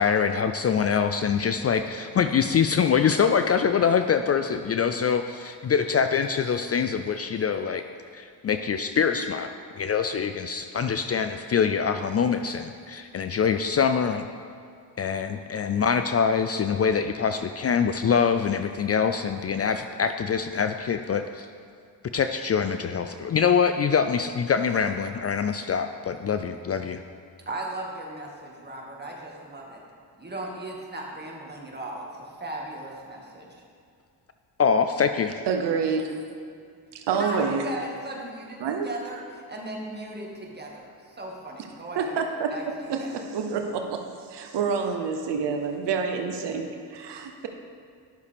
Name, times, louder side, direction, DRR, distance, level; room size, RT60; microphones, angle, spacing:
voice 1, 0.0-7.8 8.1-14.3 15.0-21.5 22.1-27.0 34.6-35.3, left 6 dB, 35° left, 8 dB, 0.4 m, -24 dB
voice 2, 27.4-29.8 30.2-33.6 37.1-42.1 42.5-43.2, right 1 dB, 25° right, -2 dB, 1.8 m, -37 dB
voice 3, 35.5-36.2 36.9-37.7 38.6-38.9 42.0-42.5 42.9-47.5, right 5 dB, 75° right, 4 dB, 0.8 m, -28 dB
11.0 x 6.5 x 3.5 m, 2.2 s
supercardioid pair, 60°, 42 cm